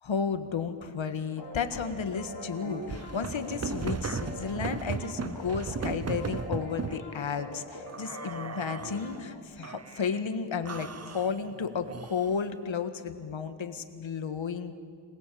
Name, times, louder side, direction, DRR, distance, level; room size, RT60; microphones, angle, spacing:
voice 1, 0.0-14.7, left 6 dB, 70° left, 9 dB, 1.7 m, -33 dB
sound 1, 1.4-9.4, left 1 dB, 50° left, 4.3 m, -43 dB
sound 2, 2.6-7.0 7.9-9.2 9.6-10.2 10.7-12.5, right 5 dB, 30° right, 0.8 m, -37 dB
26.5 x 20.5 x 8.6 m, 2.1 s
wide cardioid pair, 90°, 49 cm